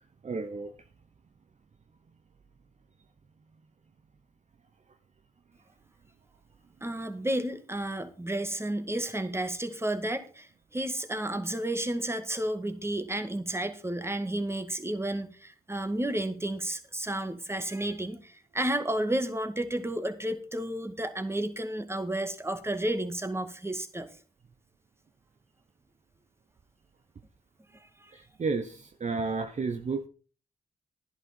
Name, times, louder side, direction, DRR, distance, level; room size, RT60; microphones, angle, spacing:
voice 1, 0.2-0.7 28.1-30.1, right 4 dB, 45° right, 7 dB, 1.0 m, -32 dB
voice 2, 6.8-24.1 27.7-28.1, right 1 dB, 15° right, 9 dB, 2.0 m, -32 dB
11.5 x 10.5 x 4.4 m, 0.38 s
supercardioid pair, 45°, 17 cm